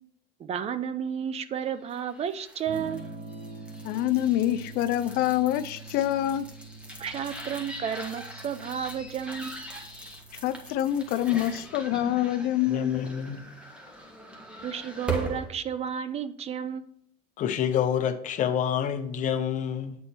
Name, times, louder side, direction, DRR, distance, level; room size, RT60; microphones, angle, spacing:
voice 1, 0.4-3.0 7.0-9.6 14.6-17.0, right 8 dB, 35° right, 0.5 m, -32 dB
sound 1, 1.8-15.5, right 2 dB, 5° right, 1.3 m, -41 dB
Electric guitar / Strum, 2.7-12.4, right 3 dB, 85° right, 2.5 m, -46 dB
voice 2, 3.8-6.5 10.4-13.1, left 12 dB, 60° left, 0.4 m, -26 dB
voice 3, 12.7-13.4 17.4-20.0, left 8 dB, 45° left, 0.8 m, -28 dB
8.2 x 4.2 x 4.4 m
supercardioid pair, 115°, 18 cm